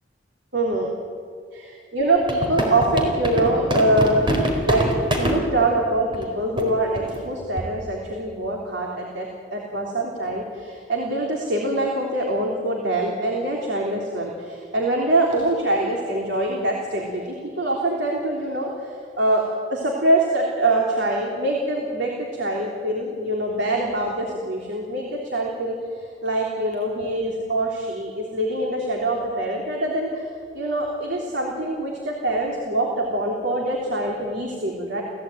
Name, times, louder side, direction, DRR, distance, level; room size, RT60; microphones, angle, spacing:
voice 1, 0.5-0.9 1.5-4.3 4.6-4.9 5.2-19.4 19.7-25.8 26.2-30.2 30.5-35.0, right 1 dB, 70° right, -1 dB, 3.5 m, -24 dB
sound 1, 2.2-5.4 6.1-6.2 6.6-6.7 7.0-7.2 7.6-7.8, equal, 25° right, 4.4 m, -23 dB
29.5 x 17.0 x 9.4 m, 2.2 s
head